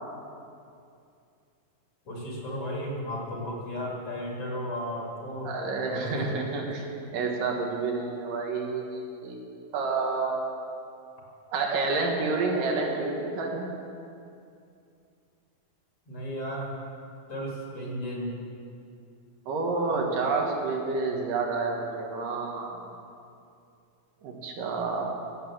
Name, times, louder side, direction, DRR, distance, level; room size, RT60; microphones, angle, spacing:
voice 1, 2.1-5.5 6.0-6.3 16.1-16.7 17.3-18.3, equal, 45° left, -3 dB, 3.0 m, -34 dB
voice 2, 5.4-6.8 7.1-9.4 9.7-10.7 11.5-13.7 19.5-22.8 24.2-25.1, right 3 dB, 80° right, 0 dB, 3.2 m, -29 dB
15.0 x 8.3 x 7.3 m, 2.5 s
omnidirectional pair, 3.8 m